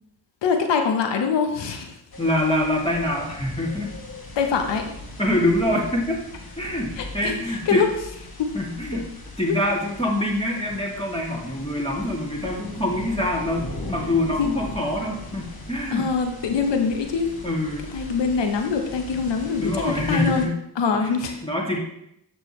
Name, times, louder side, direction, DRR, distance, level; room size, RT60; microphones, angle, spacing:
voice 1, 0.4-2.0 4.4-5.0 7.0-7.9 8.4-8.5 8.9-9.0 14.4-14.5 15.9-17.3 17.9-20.5 20.8-21.4, left 5 dB, 80° left, 5 dB, 0.9 m, -24 dB
sound 1, 2.1-20.5, left 2 dB, 60° left, 1.6 m, -39 dB
voice 2, 2.2-3.9 5.2-6.2 6.6-7.9 8.5-9.0 9.4-16.1 17.4-17.9 19.6-20.6 21.4-21.8, left 1 dB, 15° left, -2 dB, 2.2 m, -25 dB
7.0 x 6.7 x 3.1 m, 0.78 s
supercardioid pair, 40°, 42 cm